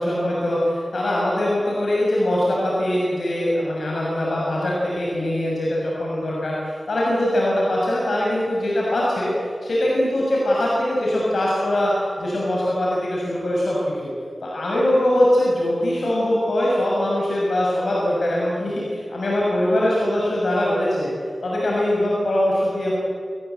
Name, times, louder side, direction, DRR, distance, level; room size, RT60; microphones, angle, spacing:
voice 1, 0.0-14.1 14.4-21.1 21.4-22.9, left 1 dB, 80° left, -5 dB, 6.6 m, -22 dB
27.0 x 20.0 x 8.3 m, 2.2 s
wide cardioid pair, 105°, 0 cm